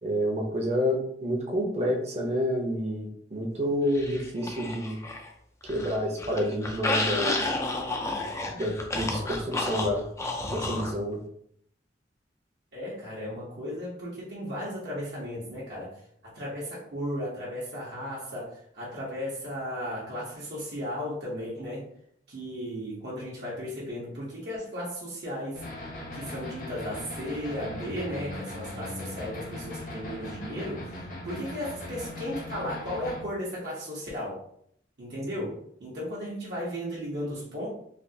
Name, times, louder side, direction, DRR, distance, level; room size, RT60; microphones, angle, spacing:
voice 1, 0.0-5.0 5.7-7.4 8.5-10.1 10.5-11.2, equal, 35° right, -1 dB, 0.7 m, -29 dB
sound 1, 3.9-5.3 5.6-10.9, left 2 dB, 15° left, 0.3 m, -31 dB
voice 2, 12.7-15.9 16.3-21.8 22.3-25.6 26.1-30.9 31.2-34.4 35.0-37.7, equal, 65° right, -7 dB, 0.9 m, -35 dB
sound 2, 25.5-33.2, left 1 dB, 50° left, 0.8 m, -39 dB
3.3 x 2.4 x 2.7 m, 0.68 s
head